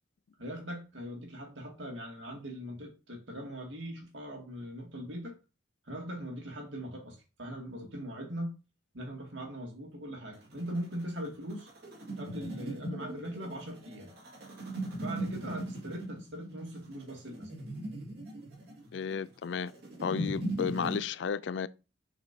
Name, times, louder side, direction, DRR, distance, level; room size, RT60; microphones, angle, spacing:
voice 1, 0.4-5.4 5.8-8.6 8.9-11.7 12.2-14.1 15.0-17.5, equal, 80° right, 2.3 m, -40 dB
sound 1, 10.3-21.0, right 1 dB, 60° right, 2.2 m, -39 dB
voice 2, 18.9-19.7 20.0-21.7, left 6 dB, 70° left, 0.4 m, -33 dB
7.1 x 5.0 x 2.8 m
head